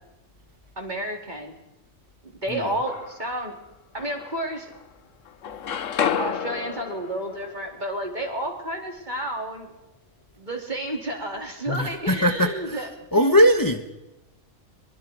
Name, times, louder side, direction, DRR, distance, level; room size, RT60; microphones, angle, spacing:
voice 1, 0.8-1.5 2.4-3.5 3.9-4.7 6.2-9.7 10.4-13.3, right 1 dB, 35° right, 2 dB, 4.1 m, -31 dB
sound 1, 2.5-3.4 4.0-5.0 5.3-9.2, left 8 dB, 70° left, 1.3 m, -32 dB
voice 2, 11.7-13.9, equal, 15° left, 6 dB, 1.2 m, -21 dB
25.0 x 23.5 x 4.8 m, 0.93 s
omnidirectional pair, 1.4 m